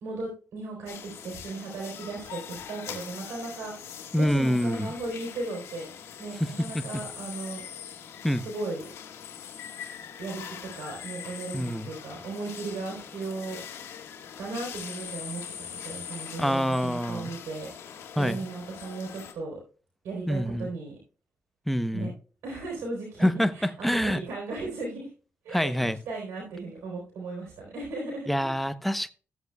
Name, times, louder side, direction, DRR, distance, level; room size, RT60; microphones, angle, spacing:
voice 1, 0.0-5.9 6.2-7.6 8.4-8.8 10.2-13.6 14.4-19.6 20.0-21.0 21.9-22.1 22.4-25.1 25.4-28.3, right 3 dB, 90° right, 3.5 m, -36 dB
sound 1, 0.9-19.3, left 8 dB, 85° left, 1.5 m, -42 dB
voice 2, 4.1-4.9 6.7-6.8 8.2-8.4 11.5-11.9 16.4-17.3 18.2-18.5 20.3-20.7 21.7-22.1 23.2-23.5 23.8-24.2 25.5-26.0 28.3-29.1, equal, ahead, 0.7 m, -26 dB
14.5 x 7.9 x 2.3 m
cardioid pair, 60°, 5 cm